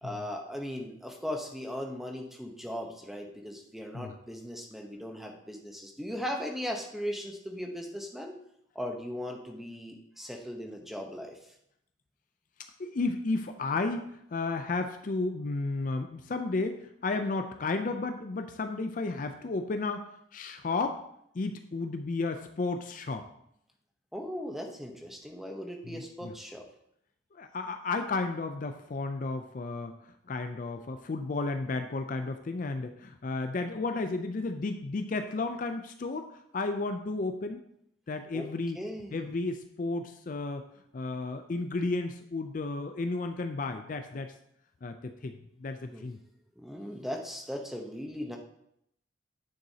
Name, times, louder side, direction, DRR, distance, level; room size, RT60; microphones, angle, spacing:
voice 1, 0.0-8.4 8.7-11.5 24.1-26.7 38.3-38.5 38.7-39.3 45.9-46.1 46.6-48.4, equal, ahead, 2 dB, 0.8 m, -38 dB
voice 2, 12.8-21.0 21.3-23.3 25.9-26.3 27.3-29.9 30.3-36.3 36.5-37.6 38.1-38.8 39.1-40.6 40.9-44.3 44.8-45.3 45.6-46.2, left 3 dB, 40° left, 7 dB, 0.4 m, -33 dB
9.1 x 6.9 x 2.8 m, 0.75 s
head